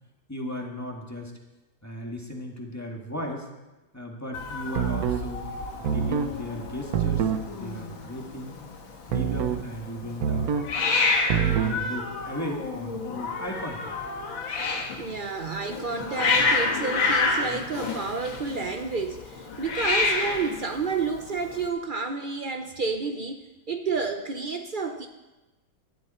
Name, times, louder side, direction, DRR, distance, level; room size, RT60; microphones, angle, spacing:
voice 1, 0.3-1.3 1.8-3.5 3.9-5.5 5.8-8.5 9.1-10.5 11.3-13.9 15.1-15.2, left 1 dB, 10° left, 0 dB, 1.8 m, -36 dB
Hiss, 4.3-21.7, left 3 dB, 85° left, 2.4 m, -29 dB
sound 1, 4.7-5.3 5.8-6.3 6.9-7.5 9.1-9.6 10.2-10.7 11.3-11.8, right 8 dB, 60° right, 1.2 m, -25 dB
voice 2, 15.0-25.1, right 4 dB, 85° right, 5 dB, 0.4 m, -30 dB
18.5 x 11.5 x 4.4 m, 1.1 s
omnidirectional pair, 2.1 m